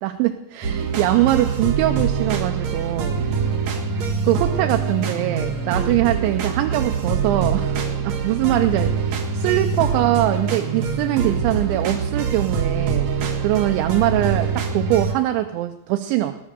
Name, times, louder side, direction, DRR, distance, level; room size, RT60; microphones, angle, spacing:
voice 1, 0.0-3.2 4.2-7.8 8.0-13.1 13.4-16.4, right 14 dB, 80° right, 7 dB, 2.9 m, -22 dB
sound 1, 0.6-15.1, right 5 dB, 60° right, 1.9 m, -24 dB
19.5 x 10.0 x 6.7 m, 0.85 s
omnidirectional pair, 5.6 m